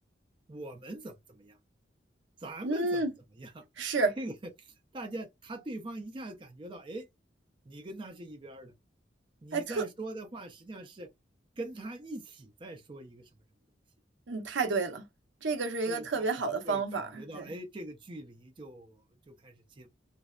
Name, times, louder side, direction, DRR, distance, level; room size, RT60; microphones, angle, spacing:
voice 1, 0.5-1.6 2.4-3.1 3.4-3.6 4.2-4.3 4.9-7.0 7.7-8.7 9.4-11.1 11.6-13.3 15.9-19.0 19.3-19.9, right 1 dB, 25° right, 0.5 m, -42 dB
voice 2, 2.6-3.1 3.8-4.1 9.5-9.9 14.3-15.0 15.4-17.5, right 3 dB, 80° right, 0.7 m, -30 dB
2.6 x 2.1 x 2.3 m
head